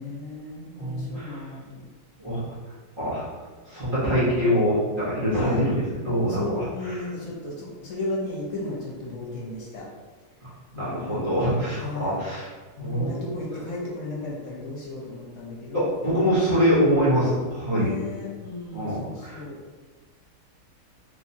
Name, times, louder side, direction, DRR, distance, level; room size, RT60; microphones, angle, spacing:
voice 1, 0.0-1.9 5.4-5.6 6.3-9.8 10.7-12.2 12.8-16.1 17.7-19.6, left 2 dB, 70° left, -4 dB, 1.1 m, -34 dB
voice 2, 0.7-1.4 2.2-2.5 3.0-3.2 3.7-7.0 10.4-12.5 12.8-13.1 15.7-17.9 18.7-19.4, equal, 40° right, -10 dB, 1.0 m, -24 dB
3.2 x 2.7 x 2.6 m, 1.3 s
omnidirectional pair, 1.6 m